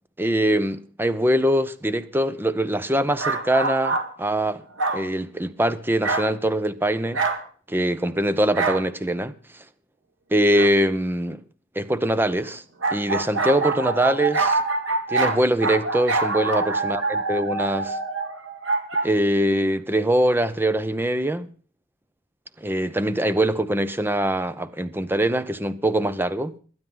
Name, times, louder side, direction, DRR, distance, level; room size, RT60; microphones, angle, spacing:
voice 1, 0.2-4.6 4.9-7.2 7.7-9.6 10.3-11.4 11.8-12.6 12.9-14.6 15.1-18.0 19.0-21.5 22.6-26.6, right 1 dB, 10° right, 0.6 m, -23 dB
sound 1, 3.1-4.1 4.8-5.1 6.0-6.3 7.1-7.4 8.5-8.8 10.5-10.7 12.8-19.1, right 3 dB, 65° right, 1.9 m, -25 dB
22.0 x 9.5 x 3.9 m
head